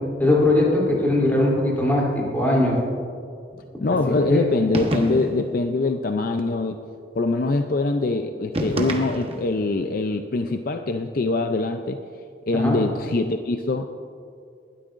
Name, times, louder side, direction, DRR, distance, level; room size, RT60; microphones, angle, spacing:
voice 1, 0.2-2.7 4.2-4.4 12.5-12.8, left 1 dB, 10° left, -4 dB, 3.0 m, -20 dB
voice 2, 3.8-6.8 7.2-12.0 12.5-13.9, left 3 dB, 50° left, 6 dB, 0.5 m, -23 dB
sound 1, 4.7-5.5 8.5-9.6, right 1 dB, 30° right, 1.1 m, -27 dB
20.5 x 12.5 x 2.5 m, 2.4 s
head